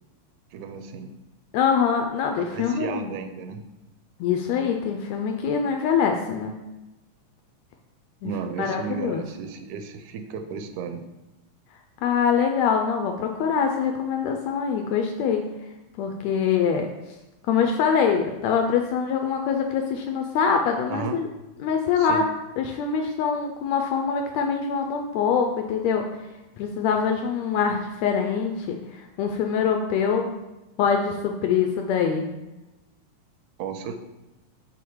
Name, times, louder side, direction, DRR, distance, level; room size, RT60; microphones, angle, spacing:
voice 1, 0.5-1.1 2.4-3.6 8.2-11.0 20.9-21.2 22.0-22.2 33.6-33.9, right 6 dB, 80° right, 7 dB, 1.9 m, -34 dB
voice 2, 1.5-3.1 4.2-6.5 8.2-8.3 8.6-9.2 12.0-15.5 16.0-16.9 17.5-21.3 21.6-22.2 22.6-26.1 26.6-30.3 30.8-32.3, left 6 dB, 80° left, 3 dB, 1.6 m, -24 dB
6.1 x 3.6 x 4.6 m, 1.0 s
omnidirectional pair, 3.5 m